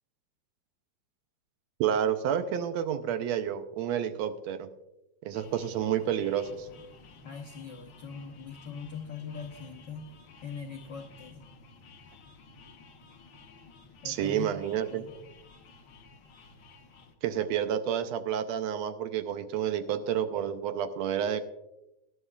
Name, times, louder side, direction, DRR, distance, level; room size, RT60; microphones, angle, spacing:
voice 1, 1.8-4.7 5.2-6.7 14.0-15.0 17.2-21.4, right 9 dB, 75° right, 9 dB, 1.8 m, -30 dB
sound 1, 5.3-17.1, left 4 dB, 60° left, 1.1 m, -53 dB
voice 2, 7.2-10.1 10.4-11.4 14.0-14.5 14.9-15.1, left 6 dB, 85° left, 0 dB, 0.9 m, -41 dB
18.5 x 11.0 x 2.4 m, 0.92 s
omnidirectional pair, 3.4 m